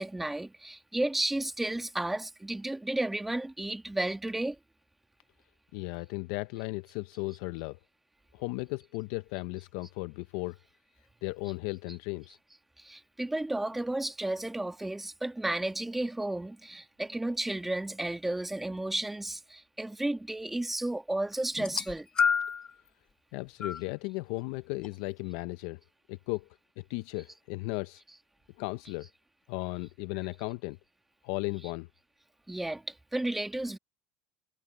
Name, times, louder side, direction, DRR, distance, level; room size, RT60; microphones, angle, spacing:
voice 1, 0.0-4.6 11.9-12.0 12.8-22.1 28.1-28.2 29.0-29.1 32.5-33.8, right 1 dB, 5° right, 1.7 m, -33 dB
voice 2, 5.7-7.8 8.3-10.6 11.2-12.4 23.3-25.8 26.1-26.5 26.9-28.0 28.6-29.1 29.5-30.8 31.2-31.9, left 24 dB, 70° left, 0.5 m, -35 dB
sound 1, 21.6-22.7 23.6-23.8 24.8-24.9, left 6 dB, 30° left, 0.9 m, -28 dB
supercardioid pair, 130°, 3 cm